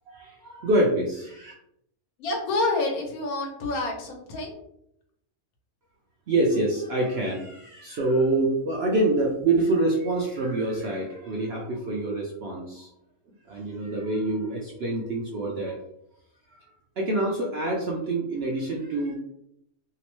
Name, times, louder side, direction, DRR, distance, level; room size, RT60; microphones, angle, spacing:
voice 1, 0.1-1.5 6.3-12.9 13.5-15.8 16.6-16.7 17.0-19.2, right 2 dB, 70° right, -2 dB, 0.6 m, -26 dB
voice 2, 2.2-4.5, left 2 dB, 85° left, 1 dB, 1.2 m, -28 dB
2.9 x 2.0 x 2.9 m, 0.76 s
omnidirectional pair, 1.5 m